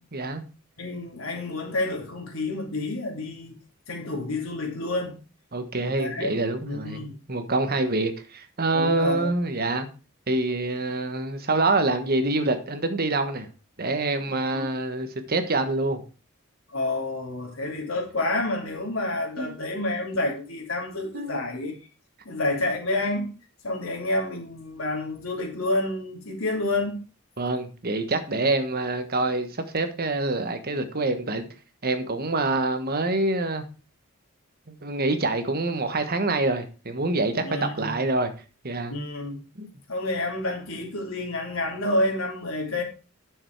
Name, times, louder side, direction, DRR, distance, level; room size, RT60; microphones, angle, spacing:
voice 1, 0.1-0.4 5.5-9.9 10.3-13.5 13.8-16.0 19.4-19.5 21.1-21.4 27.4-31.4 31.8-33.6 34.7-38.3 38.6-38.9 39.6-39.7, right 2 dB, 45° right, 1.3 m, -26 dB
voice 2, 0.8-3.6 3.9-5.2 5.7-6.4 6.6-7.2 8.7-9.3 14.5-14.6 16.7-21.8 22.2-23.3 23.6-27.0 37.4-37.9 38.9-39.4 39.9-42.8, left 2 dB, 75° left, 3.1 m, -29 dB
9.7 x 6.9 x 4.7 m
head